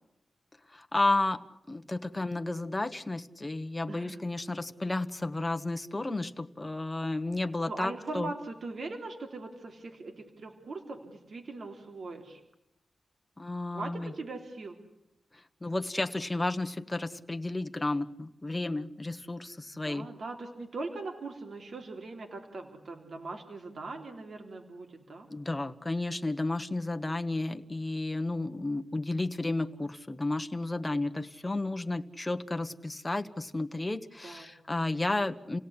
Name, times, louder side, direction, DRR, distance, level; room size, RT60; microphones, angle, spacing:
voice 1, 0.7-1.4 1.7-8.3 13.4-14.1 15.3-20.1 25.3-35.6, left 2 dB, 15° left, 7 dB, 1.2 m, -32 dB
voice 2, 3.9-4.2 7.6-12.4 13.7-14.8 19.7-25.3 34.2-34.5, right 3 dB, 55° right, 3 dB, 3.3 m, -41 dB
29.0 x 17.5 x 9.8 m, 0.88 s
wide cardioid pair, 110°, 0 cm